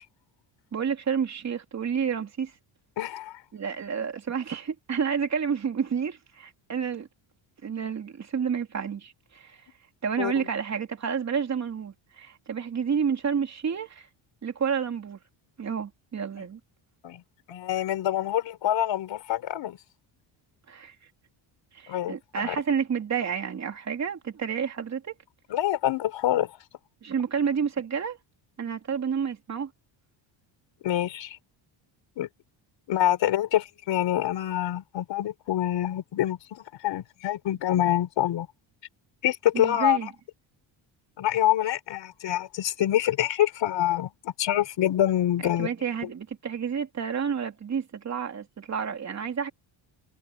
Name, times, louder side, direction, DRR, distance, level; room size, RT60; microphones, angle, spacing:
voice 1, 0.7-2.5 3.5-7.1 7.6-9.6 10.0-14.1 14.4-15.2 15.6-16.6 20.7-20.9 21.7-25.1 27.0-28.2 28.6-29.7 39.5-40.1 45.4-49.5, right 7 dB, 35° right, 3.2 m, -30 dB
voice 2, 3.0-3.4 10.2-10.5 17.0-17.2 17.5-19.8 21.9-22.6 25.5-26.5 30.8-31.4 32.2-32.3 32.9-38.5 39.2-40.1 41.2-45.7, left 12 dB, 60° left, 4.2 m, -26 dB
cardioid pair, 155°, 49 cm